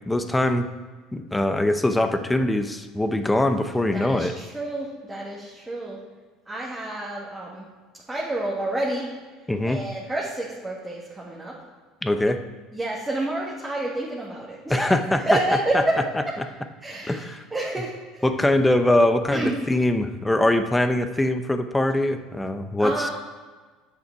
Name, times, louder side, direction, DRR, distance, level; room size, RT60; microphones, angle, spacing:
voice 1, 0.1-0.7 1.1-4.3 9.5-9.8 12.0-12.4 14.7-15.2 17.1-17.4 18.2-23.1, left 1 dB, 10° left, 9 dB, 0.7 m, -22 dB
voice 2, 3.9-6.0 6.5-7.6 8.1-9.1 9.6-11.5 12.7-14.9 15.3-16.0 16.8-18.2 19.3-19.6 22.8-23.1, right 1 dB, 10° right, -5 dB, 1.8 m, -29 dB
8.0 x 6.4 x 4.7 m, 1.4 s
hypercardioid pair, 80°, 0 cm